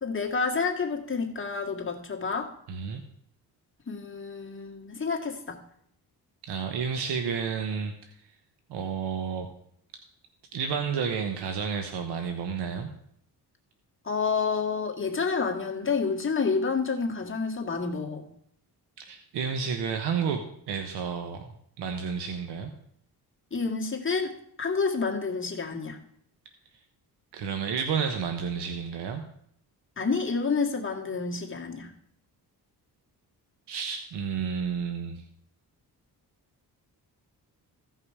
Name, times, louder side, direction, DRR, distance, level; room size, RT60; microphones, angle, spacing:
voice 1, 0.0-2.5 3.9-5.6 14.1-18.2 23.5-26.0 30.0-31.9, left 5 dB, 30° left, 0 dB, 2.0 m, -29 dB
voice 2, 2.7-3.0 6.4-7.9 8.7-9.5 10.5-12.9 19.0-22.7 27.3-29.2 33.7-35.2, right 6 dB, 90° right, 6 dB, 1.0 m, -31 dB
15.5 x 5.6 x 4.8 m, 0.69 s
cardioid pair, 90°, 39 cm